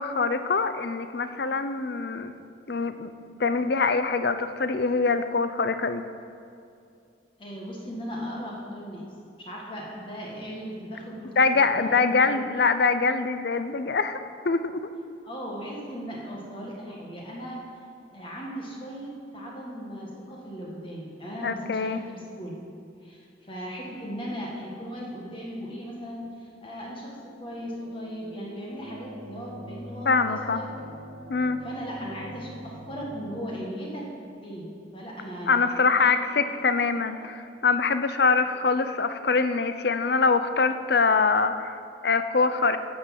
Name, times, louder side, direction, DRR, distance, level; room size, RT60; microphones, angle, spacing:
voice 1, 0.0-2.4 2.7-3.1 3.4-6.0 11.4-14.2 14.4-14.9 21.4-22.0 30.1-30.6 31.3-31.6 35.5-42.8, left 4 dB, 60° left, 10 dB, 0.6 m, -24 dB
voice 2, 7.4-9.1 9.4-12.4 15.2-17.6 18.1-22.6 23.0-31.0 31.6-34.0 34.4-36.5 37.0-37.3 38.5-38.6, equal, 30° left, -3 dB, 1.6 m, -37 dB
sound 1, 27.1-33.4, right 1 dB, 80° right, 1.3 m, -44 dB
12.0 x 6.2 x 7.4 m, 2.4 s
head